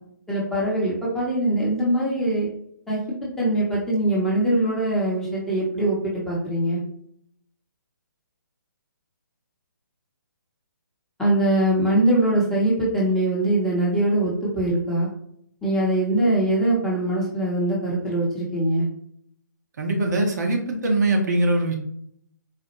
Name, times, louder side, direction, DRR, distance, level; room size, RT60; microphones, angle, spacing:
voice 1, 0.3-2.5 2.9-3.0 3.4-6.8 11.2-15.1 15.6-18.9, right 1 dB, 5° left, -6 dB, 0.8 m, -22 dB
voice 2, 19.8-21.7, right 2 dB, 60° right, 1 dB, 0.9 m, -22 dB
4.1 x 2.1 x 2.9 m, 0.69 s
hypercardioid pair, 145°, 10 cm